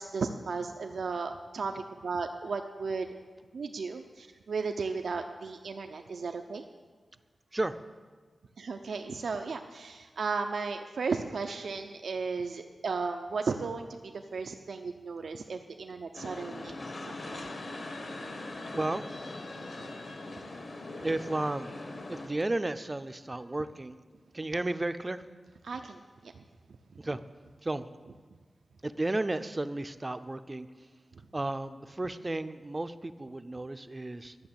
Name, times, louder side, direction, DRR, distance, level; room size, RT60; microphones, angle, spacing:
voice 1, 0.0-1.7 2.0-3.1 3.5-6.6 8.6-16.8 17.3-17.4 25.6-26.4, right 4 dB, 80° right, 5 dB, 0.6 m, -35 dB
sound 1, 16.1-22.3, left 2 dB, 55° left, 1.3 m, -41 dB
voice 2, 18.7-19.1 21.0-21.8 22.1-24.0 24.3-25.2 27.0-27.2 27.6-27.9 28.8-30.9 31.3-34.4, right 2 dB, 20° right, 12 dB, 0.5 m, -33 dB
11.5 x 6.7 x 8.8 m, 1.4 s
wide cardioid pair, 130°, 0 cm